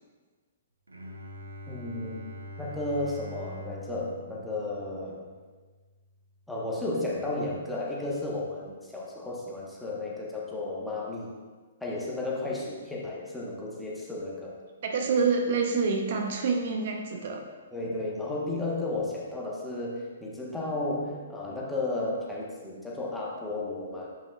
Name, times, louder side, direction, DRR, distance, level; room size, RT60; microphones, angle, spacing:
Bowed string instrument, 0.9-6.6, left 1 dB, 85° right, 0.8 m, -44 dB
voice 1, 1.7-2.3 2.6-5.3 6.5-11.3 11.8-14.5 17.7-24.1, left 2 dB, 5° left, -5 dB, 1.2 m, -33 dB
voice 2, 14.8-17.5, right 4 dB, 50° right, 3 dB, 0.7 m, -27 dB
8.7 x 5.3 x 2.4 m, 1.4 s
figure-of-eight pair, 120°, 0 cm